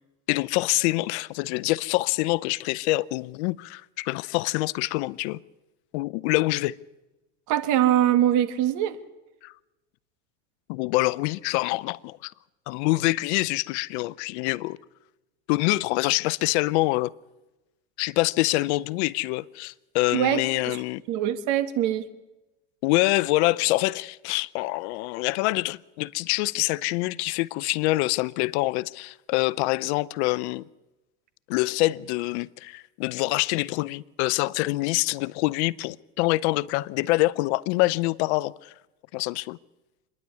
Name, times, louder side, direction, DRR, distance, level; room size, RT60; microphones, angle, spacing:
voice 1, 0.3-5.4 5.9-6.7 9.4-9.5 10.7-12.3 12.7-14.8 15.5-17.1 18.0-21.0 22.8-30.6 31.5-38.7 39.1-39.6, left 20 dB, 70° left, 0.6 m, -25 dB
voice 2, 7.5-9.0 20.1-20.8 21.1-22.1, right 11 dB, 55° right, 1.7 m, -23 dB
26.5 x 10.5 x 9.6 m
supercardioid pair, 115°, 35 cm